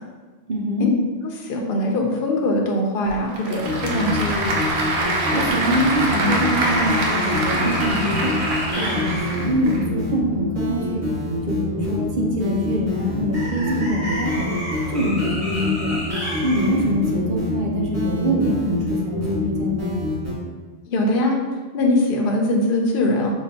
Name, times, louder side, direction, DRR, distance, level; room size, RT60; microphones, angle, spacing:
voice 1, 0.5-0.9 5.3-8.4 8.8-11.0 11.5-14.6 14.9-16.0 16.4-20.0, equal, 55° right, -2 dB, 0.8 m, -24 dB
voice 2, 1.3-4.5 20.9-21.4 21.7-23.3, left 1 dB, 65° left, 0 dB, 0.8 m, -21 dB
Applause / Crowd, 3.1-9.8, right 2 dB, 85° right, 0.9 m, -25 dB
sound 1, 3.6-20.3, left 1 dB, 15° right, 1.3 m, -26 dB
5.4 x 2.4 x 2.7 m, 1.4 s
omnidirectional pair, 1.1 m